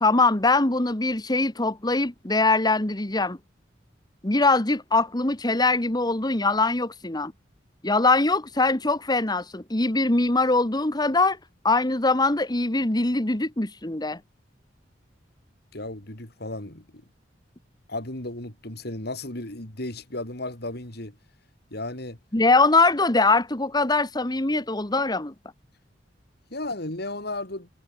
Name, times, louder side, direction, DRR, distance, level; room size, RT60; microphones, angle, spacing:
voice 1, 0.0-3.4 4.2-7.3 7.8-11.4 11.6-14.2 22.3-25.3, left 3 dB, 20° left, 1.5 m, -22 dB
voice 2, 15.7-17.0 17.9-21.1 21.7-22.2 26.5-27.7, left 2 dB, 60° left, 4.3 m, -34 dB
head